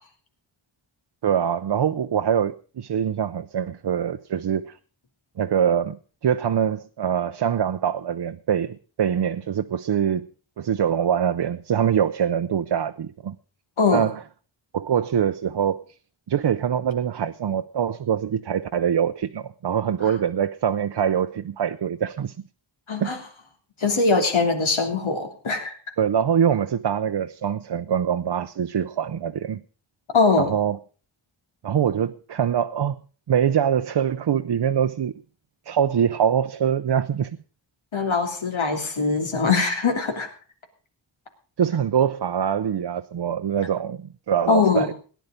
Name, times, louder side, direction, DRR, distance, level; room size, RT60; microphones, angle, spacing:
voice 1, 1.2-4.7 5.4-6.0 6.2-10.3 10.6-13.3 13.9-14.2 14.7-15.8 16.3-22.3 23.0-23.1 26.0-29.6 30.4-30.8 31.6-33.0 33.3-35.1 35.7-37.3 41.6-44.9, right 8 dB, 60° right, 0.7 m, -24 dB
voice 2, 22.9-23.2 23.8-25.8 30.1-30.5 37.9-40.3 44.5-44.9, left 4 dB, 75° left, 3.2 m, -22 dB
18.0 x 10.5 x 5.1 m
wide cardioid pair, 110°, 48 cm